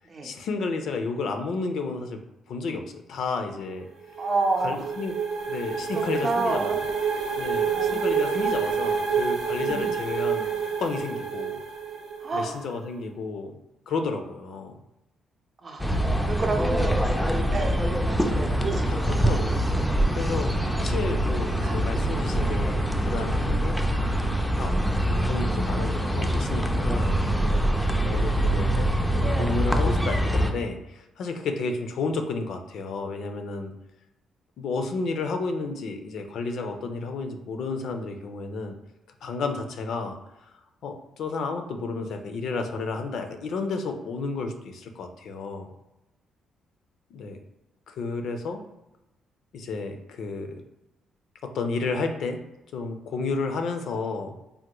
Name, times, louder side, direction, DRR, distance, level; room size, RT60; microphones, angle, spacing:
voice 1, 0.2-2.2 2.5-3.9 4.6-5.1 5.5-6.7 7.4-10.5 10.8-11.6 12.3-13.5 13.9-14.8 16.8-17.1 18.3-18.6 18.9-19.6 20.1-23.8 24.6-24.7 25.0-33.7 34.6-38.8 39.2-40.2 40.8-45.7 47.1-47.4 47.9-48.6 49.5-50.5 51.4-52.4 52.7-54.4, left 3 dB, 70° left, 6 dB, 0.4 m, -32 dB
sound 1, 3.9-12.6, right 6 dB, 90° right, 0.6 m, -28 dB
voice 2, 4.2-4.8 5.9-6.8 7.6-8.1 9.5-9.9 12.2-12.6 15.6-15.9 16.3-18.9 21.5-21.8 23.3-23.5 24.6-24.9 27.6-27.9, right 3 dB, 40° right, 3 dB, 0.5 m, -30 dB
sound 2, 15.8-30.5, right 1 dB, 5° left, 0.3 m, -24 dB
3.4 x 2.1 x 2.9 m, 0.95 s
cardioid pair, 90°, 0 cm